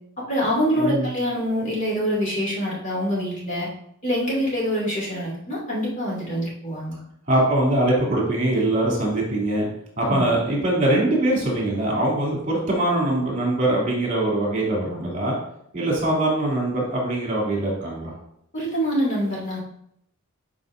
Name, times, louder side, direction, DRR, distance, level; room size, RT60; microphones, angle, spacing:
voice 1, 0.3-3.7 4.0-6.9 10.1-10.2 18.5-19.6, equal, 40° left, -5 dB, 2.7 m, -25 dB
voice 2, 0.8-1.1 7.3-9.7 10.0-15.3 15.7-18.1, right 1 dB, 35° right, -4 dB, 3.0 m, -22 dB
11.0 x 5.2 x 2.7 m, 0.72 s
head